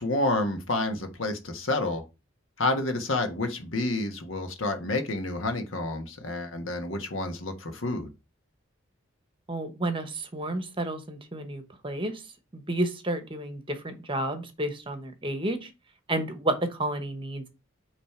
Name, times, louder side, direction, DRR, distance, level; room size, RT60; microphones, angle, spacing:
voice 1, 0.0-2.0 2.6-8.1, left 2 dB, 80° left, 1.4 m, -29 dB
voice 2, 9.5-12.2 12.5-15.7 16.1-17.5, right 1 dB, 25° right, 1.0 m, -31 dB
8.9 x 3.3 x 4.4 m
head